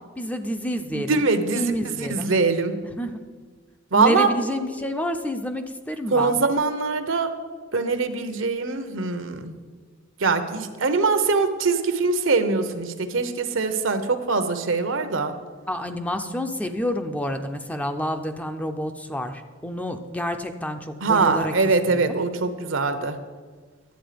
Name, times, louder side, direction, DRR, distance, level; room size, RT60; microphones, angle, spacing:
voice 1, 0.2-1.2 1.5-2.3 2.8-3.2 3.9-6.4 15.7-21.5 21.9-22.2, equal, 5° left, 6 dB, 0.5 m, -29 dB
voice 2, 0.9-1.7 2.0-2.7 3.9-4.3 6.1-7.3 7.7-9.5 10.2-15.3 21.0-23.2, right 4 dB, 75° right, 9 dB, 0.9 m, -22 dB
11.5 x 8.3 x 5.1 m, 1.5 s
head